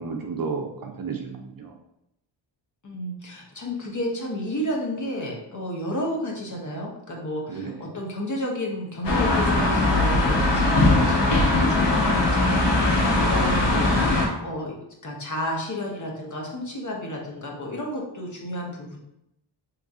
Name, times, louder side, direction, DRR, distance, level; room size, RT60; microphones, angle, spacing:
voice 1, 0.0-1.7 7.5-7.9 13.1-13.4, right 5 dB, 45° right, 2 dB, 0.5 m, -33 dB
voice 2, 2.8-14.8 15.0-19.0, left 1 dB, 35° left, -1 dB, 0.9 m, -31 dB
sound 1, 9.0-14.3, left 2 dB, 55° left, 1.1 m, -20 dB
3.0 x 2.6 x 3.6 m, 0.81 s
wide cardioid pair, 85°, 49 cm